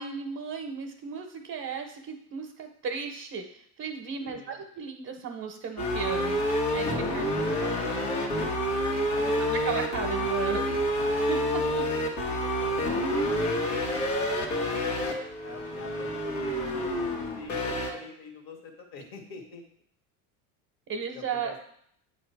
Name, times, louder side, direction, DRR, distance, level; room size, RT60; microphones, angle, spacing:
voice 1, 0.0-7.2 7.6-7.7 9.4-10.6 11.3-11.8 20.9-21.5, right 6 dB, 35° right, 3 dB, 0.8 m, -35 dB
voice 2, 4.2-4.6 6.9-8.3 9.1-10.8 11.8-12.0 12.3-15.0 15.4-19.6 21.1-21.6, left 4 dB, 55° left, 2 dB, 1.7 m, -46 dB
sound 1, 5.8-17.9, equal, 85° left, 1.6 m, -28 dB
8.3 x 2.8 x 4.6 m, 0.68 s
supercardioid pair, 90°, 43 cm